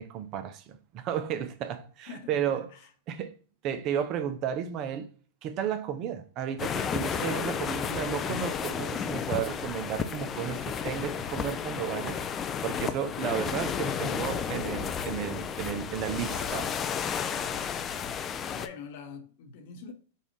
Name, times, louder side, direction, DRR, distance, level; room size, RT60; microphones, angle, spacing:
voice 1, 0.0-2.7 3.1-3.3 3.6-5.1 5.4-12.2 12.6-16.6, right 9 dB, 40° right, 0.5 m, -33 dB
voice 2, 2.1-2.9 13.7-14.3 16.0-16.8 17.2-17.8 18.5-19.9, left 5 dB, 55° left, 0.9 m, -45 dB
sound 1, 6.6-18.7, left 7 dB, 25° left, 0.4 m, -32 dB
5.3 x 2.5 x 3.1 m
hypercardioid pair, 110°, 0 cm